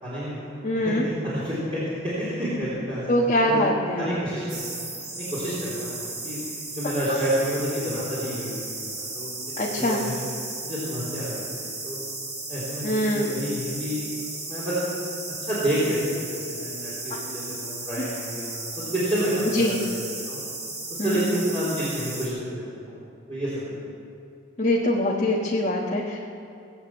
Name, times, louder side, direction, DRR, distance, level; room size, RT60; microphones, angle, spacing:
voice 1, 0.0-3.0 3.4-3.7 4.0-4.8 5.2-6.0 6.2-6.5 6.7-8.5 8.8-9.3 9.8-10.2 10.6-12.0 12.5-14.0 14.4-14.8 15.4-20.4 20.9-23.0 23.3-23.8, equal, 30° right, -11 dB, 4.1 m, -29 dB
voice 2, 0.6-1.1 3.1-4.2 9.6-10.1 12.8-13.4 18.0-18.1 19.5-19.8 21.0-21.4 24.6-26.2, left 1 dB, 35° left, -4 dB, 1.3 m, -23 dB
sound 1, 4.5-22.3, right 3 dB, 60° right, 4.6 m, -35 dB
20.0 x 8.2 x 7.9 m, 2.7 s
head